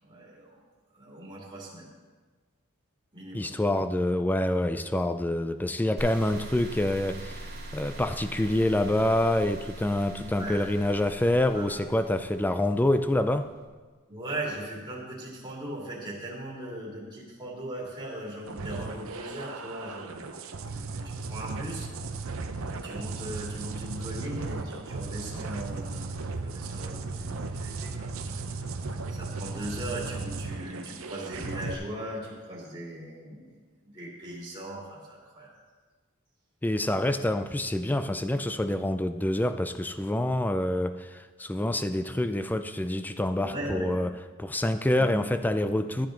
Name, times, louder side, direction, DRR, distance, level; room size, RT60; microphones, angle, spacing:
voice 1, 0.0-0.6 0.9-1.9 3.1-3.5 10.2-10.6 11.5-11.7 14.1-21.9 22.7-28.5 29.1-33.6 33.9-35.5 43.4-44.0 45.0-45.2, right 1 dB, 20° right, -6 dB, 2.7 m, -39 dB
voice 2, 3.3-13.5 36.6-46.1, left 1 dB, 10° left, 10 dB, 0.4 m, -27 dB
sound 1, 6.0-13.1, right 1 dB, 50° right, 1.9 m, -42 dB
sound 2, 18.5-31.7, right 3 dB, 70° right, 0.7 m, -36 dB
13.0 x 8.7 x 3.8 m, 1.4 s
head